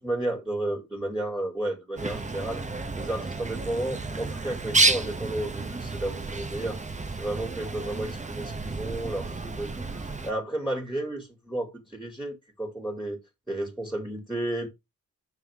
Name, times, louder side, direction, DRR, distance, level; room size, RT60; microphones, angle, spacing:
voice 1, 0.0-2.6 3.0-6.8 7.2-13.2 13.5-14.7, right 1 dB, ahead, 2.2 m, -32 dB
Bird, 2.0-10.3, right 3 dB, 20° right, 0.9 m, -30 dB
6.4 x 5.7 x 3.5 m
cardioid pair, 80°, 35 cm